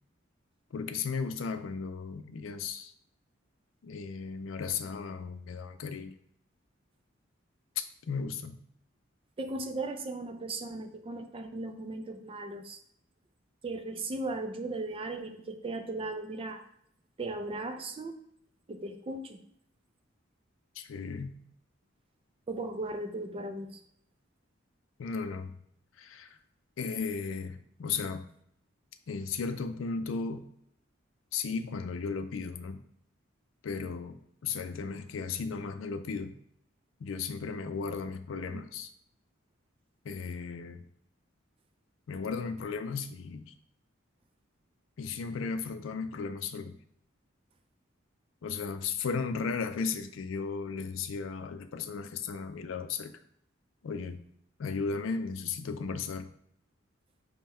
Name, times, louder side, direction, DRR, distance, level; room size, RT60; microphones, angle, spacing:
voice 1, 0.7-2.9 3.8-6.1 7.8-8.6 20.8-21.4 25.0-25.6 26.0-26.4 26.8-28.3 29.1-30.5 31.3-32.8 33.6-36.4 37.0-38.9 40.0-40.8 42.1-43.5 45.0-46.8 48.4-53.1 53.8-54.2 54.6-56.3, left 5 dB, 75° left, 9 dB, 0.4 m, -35 dB
voice 2, 9.4-12.8 13.6-16.6 17.2-18.2 18.7-19.4 22.5-23.8 38.5-38.6, right 2 dB, 30° right, 7 dB, 0.4 m, -37 dB
5.4 x 2.2 x 4.2 m, 0.70 s
head